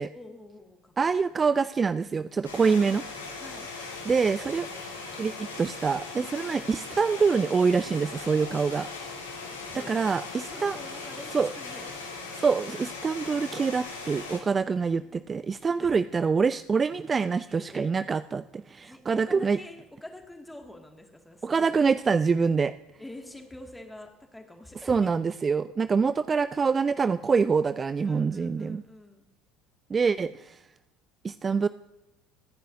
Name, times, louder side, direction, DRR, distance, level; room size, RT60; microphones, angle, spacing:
voice 1, 0.1-1.6 2.6-2.9 3.4-3.7 4.0-5.3 9.7-10.1 10.5-12.3 14.7-15.2 15.8-16.0 17.5-17.9 18.9-21.8 23.0-25.1 28.0-29.2, left 1 dB, 5° left, 3 dB, 2.2 m, -47 dB
voice 2, 1.0-3.0 4.1-4.7 5.2-5.3 5.6-8.9 9.9-10.8 11.3-11.5 12.3-19.6 21.4-22.7 24.9-28.8 29.9-30.3 31.2-31.7, right 5 dB, 25° right, 15 dB, 0.3 m, -25 dB
sound 1, 2.4-14.4, left 4 dB, 85° left, 2.4 m, -39 dB
25.5 x 10.0 x 2.7 m, 0.99 s
figure-of-eight pair, 65°, 0 cm